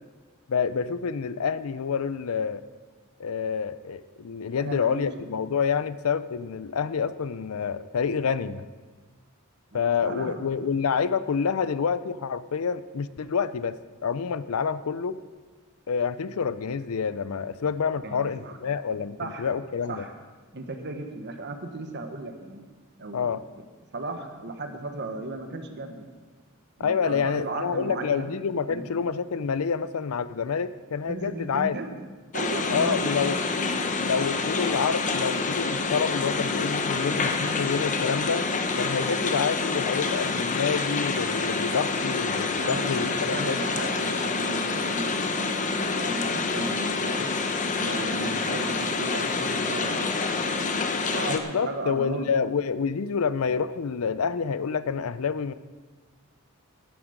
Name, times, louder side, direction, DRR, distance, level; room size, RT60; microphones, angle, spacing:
voice 1, 0.5-2.6 3.2-8.7 9.7-13.8 14.0-15.2 15.9-20.0 23.1-23.4 26.8-31.8 32.7-33.4 34.0-38.4 38.8-43.6 51.3-55.5, left 6 dB, 75° left, 15 dB, 0.5 m, -28 dB
voice 2, 4.6-5.1 9.7-10.4 18.0-18.6 19.2-19.5 19.9-20.1 20.5-22.7 23.0-23.3 23.9-26.1 26.8-28.3 28.7-28.9 31.1-32.1 32.3-33.4 42.6-47.3 47.8-50.4 51.1-51.4 51.6-52.3, right 2 dB, 55° right, 6 dB, 1.3 m, -36 dB
sound 1, 32.3-51.4, left 4 dB, 35° left, 0.9 m, -27 dB
12.0 x 11.0 x 5.1 m, 1.4 s
head